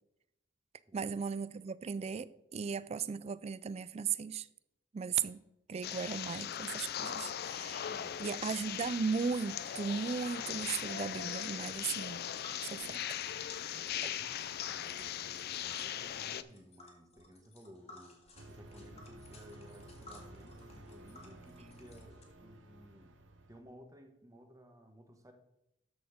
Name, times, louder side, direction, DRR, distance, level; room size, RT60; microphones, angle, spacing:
voice 1, 0.9-4.5 4.9-5.4 5.7-7.9 8.2-12.2 12.6-13.6, right 6 dB, 35° right, 0.3 m, -37 dB
sound 1, 5.8-16.4, left 10 dB, 55° left, 0.4 m, -39 dB
voice 2, 7.9-8.2 12.0-12.1 13.6-14.3 14.7-23.1 23.5-25.3, equal, 20° right, 1.2 m, -56 dB
Tick, 9.6-22.2, left 3 dB, 35° left, 1.8 m, -57 dB
sound 2, 18.3-23.6, right 1 dB, 75° right, 1.0 m, -54 dB
12.5 x 4.3 x 5.0 m
head